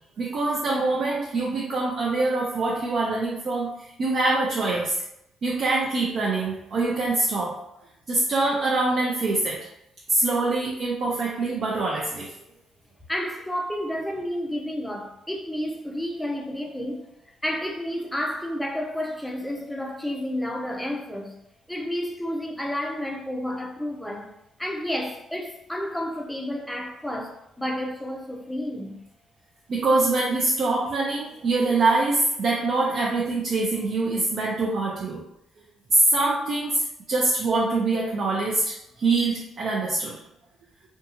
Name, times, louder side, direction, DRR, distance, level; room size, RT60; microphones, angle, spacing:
voice 1, 0.2-3.7 4.0-4.9 5.4-7.5 8.1-9.6 10.1-12.3 29.7-35.2 35.9-36.8 37.1-40.1, right 2 dB, 55° right, 0.5 m, -24 dB
voice 2, 13.1-17.1 17.4-21.4 21.7-24.3 24.6-29.0, equal, 5° left, 0.5 m, -31 dB
2.6 x 2.3 x 2.8 m
cardioid pair, 90°, 0 cm